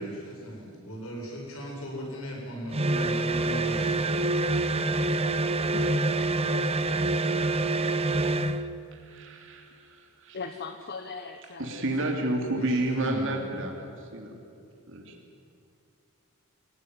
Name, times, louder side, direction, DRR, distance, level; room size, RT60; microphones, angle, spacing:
voice 1, 0.0-4.2 12.5-13.6, right 1 dB, 70° left, -1 dB, 7.6 m, -38 dB
sound 1, 2.7-8.7, right 2 dB, 30° right, 0.9 m, -26 dB
voice 2, 5.6-6.4 10.3-12.1, left 4 dB, 50° left, 6 dB, 1.3 m, -40 dB
voice 3, 8.9-10.4 11.6-13.9 14.1-14.3 14.9-15.1, right 1 dB, 65° right, 1 dB, 3.1 m, -30 dB
25.5 x 17.0 x 9.6 m, 2.6 s
head